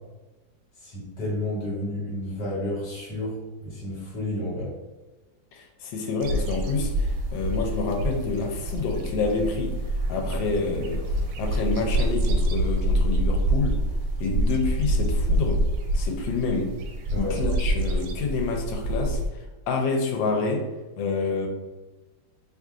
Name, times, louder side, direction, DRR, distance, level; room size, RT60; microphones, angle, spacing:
voice 1, 0.8-4.7 17.1-17.4, left 1 dB, 65° left, -6 dB, 1.7 m, -31 dB
voice 2, 5.5-9.8 10.1-11.0 11.4-13.8 14.2-15.6 15.9-16.7 17.2-20.7 21.0-21.5, left 4 dB, 80° left, 2 dB, 1.4 m, -28 dB
sound 1, 6.2-19.3, right 1 dB, 80° right, 1.2 m, -26 dB
3.1 x 2.5 x 3.6 m, 1.2 s
omnidirectional pair, 2.0 m